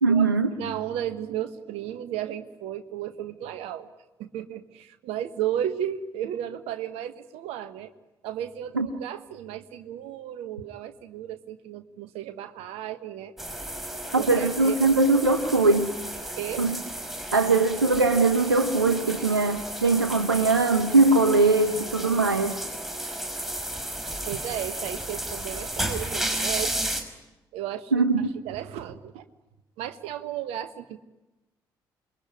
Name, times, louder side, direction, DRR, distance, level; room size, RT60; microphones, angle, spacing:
voice 1, 0.0-0.5 8.8-8.9 14.1-15.9 16.6-16.7 17.3-22.6 27.9-28.1, right 3 dB, 85° right, 8 dB, 1.1 m, -21 dB
voice 2, 0.6-3.9 4.2-7.9 8.2-13.3 14.2-14.8 16.4-16.6 24.2-26.7 27.5-28.1 28.4-29.2 29.8-31.0, right 11 dB, 65° right, 10 dB, 1.5 m, -34 dB
sound 1, 13.4-27.0, right 1 dB, 5° right, 5.5 m, -33 dB
27.5 x 22.0 x 9.7 m, 1.0 s
figure-of-eight pair, 45°, 11 cm